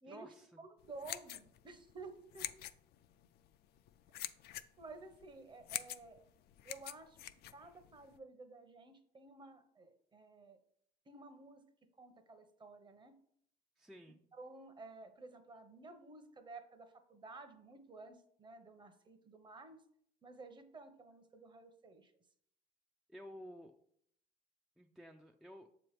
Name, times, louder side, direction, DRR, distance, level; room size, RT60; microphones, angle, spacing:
voice 1, 0.0-0.6 13.8-14.2 23.1-23.8 24.8-25.7, equal, ahead, 3 dB, 0.3 m, -53 dB
voice 2, 0.6-2.5 4.8-6.2 6.6-7.2 7.5-10.6 11.1-11.6 12.0-13.1 14.3-19.8 20.2-22.1, right 3 dB, 30° right, 8 dB, 0.8 m, -53 dB
sound 1, 0.8-8.2, left 13 dB, 70° left, 0.4 m, -47 dB
6.9 x 3.0 x 5.0 m, 0.68 s
cardioid pair, 110°, 17 cm